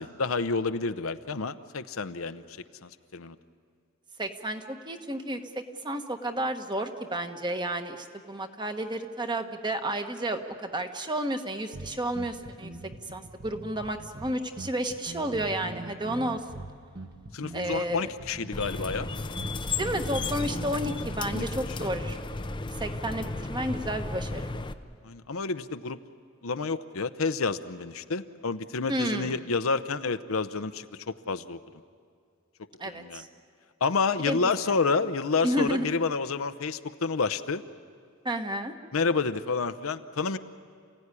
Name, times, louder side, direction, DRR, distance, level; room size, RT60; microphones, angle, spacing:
voice 1, 0.0-2.4 2.8-3.3 17.3-19.1 21.3-21.5 25.0-26.0 26.4-31.6 32.9-33.2 33.8-37.6 38.9-40.4, left 4 dB, 75° left, 11 dB, 0.8 m, -29 dB
voice 2, 4.2-5.4 5.8-12.7 13.1-16.6 17.5-18.1 19.8-22.2 22.8-24.5 28.9-29.4 32.8-33.3 34.3-34.4 35.4-35.9 38.2-38.7, right 1 dB, 20° right, 6 dB, 1.2 m, -31 dB
sound 1, 11.7-21.3, right 1 dB, 50° right, 1.4 m, -42 dB
sound 2, 18.5-24.7, left 3 dB, 20° left, 0.6 m, -34 dB
28.5 x 16.0 x 9.9 m, 2.2 s
head